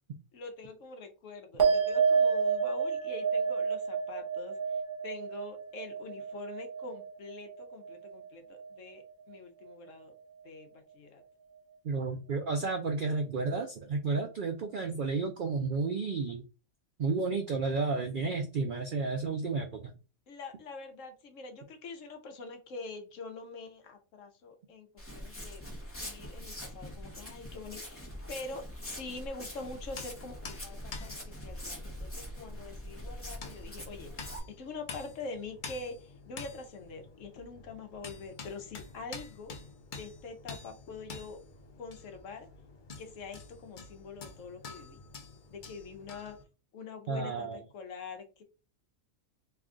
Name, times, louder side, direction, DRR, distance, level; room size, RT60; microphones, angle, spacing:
voice 1, 0.3-10.1 10.4-11.2 20.3-25.6 25.9-39.5 39.9-41.4 41.8-42.5 43.0-45.0 45.5-46.4 46.7-48.4, left 3 dB, 65° left, 5 dB, 1.1 m, -45 dB
sound 1, 1.6-8.3 8.6-9.2, right 6 dB, 45° right, 0.9 m, -30 dB
voice 2, 11.8-16.4 17.0-19.9 47.1-47.6, right 4 dB, 70° right, 4 dB, 0.4 m, -32 dB
Walk footsteps, 25.0-34.4, equal, 10° left, 0.7 m, -43 dB
sound 2, 29.6-46.4, left 4 dB, 50° left, 0.6 m, -48 dB
3.3 x 2.3 x 3.7 m, 0.33 s
omnidirectional pair, 1.5 m